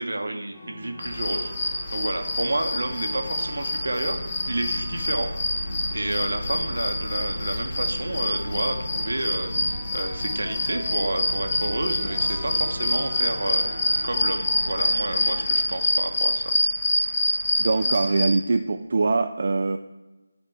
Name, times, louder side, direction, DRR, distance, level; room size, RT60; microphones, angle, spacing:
voice 1, 0.0-4.2 4.5-5.6 5.9-13.7 14.0-16.6, right 2 dB, 80° right, 5 dB, 1.0 m, -30 dB
sound 1, 0.5-15.6, left 1 dB, 15° left, 1.7 m, -42 dB
sound 2, 1.0-18.3, left 2 dB, 30° left, 1.9 m, -26 dB
sound 3, 2.0-18.9, equal, 80° left, 1.6 m, -37 dB
voice 2, 17.6-19.8, right 3 dB, 50° right, 7 dB, 0.3 m, -23 dB
11.5 x 4.3 x 3.3 m, 1.1 s
figure-of-eight pair, 170°, 0 cm